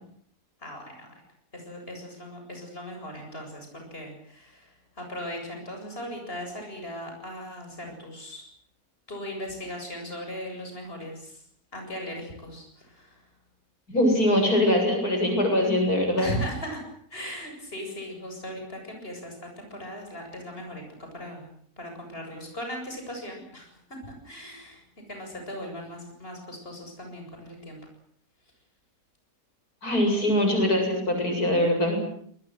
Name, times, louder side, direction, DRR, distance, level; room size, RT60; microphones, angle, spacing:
voice 1, 0.6-1.1 1.5-8.4 9.1-11.4 11.7-13.3 16.2-21.5 21.8-27.8, equal, 35° left, 3 dB, 8.2 m, -38 dB
voice 2, 13.9-16.3 29.8-32.0, left 1 dB, 70° left, 4 dB, 8.3 m, -22 dB
28.0 x 22.0 x 7.9 m, 0.63 s
omnidirectional pair, 1.6 m